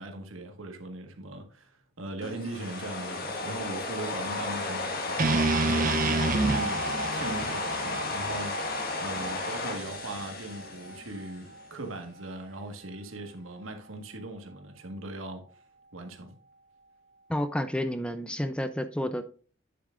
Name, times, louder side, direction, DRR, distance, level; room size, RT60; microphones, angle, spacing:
voice 1, 0.0-15.4 15.9-16.3, right 2 dB, 80° right, 1.6 m, -40 dB
sound 1, 2.2-11.4, left 3 dB, 50° left, 1.6 m, -34 dB
sound 2, 5.2-9.3, right 3 dB, 40° right, 0.7 m, -28 dB
sound 3, 6.5-16.2 16.5-16.6, right 1 dB, 60° right, 2.2 m, -42 dB
voice 2, 17.3-19.2, equal, 5° left, 0.5 m, -30 dB
9.5 x 7.2 x 2.5 m
head